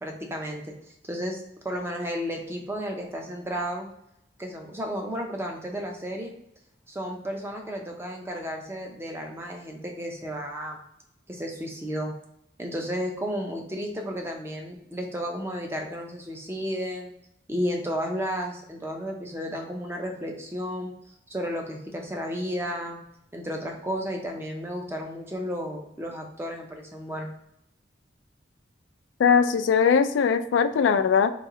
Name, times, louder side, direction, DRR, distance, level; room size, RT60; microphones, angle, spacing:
voice 1, 0.0-3.9 4.4-6.3 6.9-10.8 11.3-12.1 12.6-17.1 17.5-20.9 21.3-23.0 23.3-27.3, equal, 15° right, 2 dB, 0.5 m, -33 dB
voice 2, 29.2-31.3, left 6 dB, 80° left, 10 dB, 0.3 m, -20 dB
3.1 x 2.7 x 3.6 m, 0.77 s
head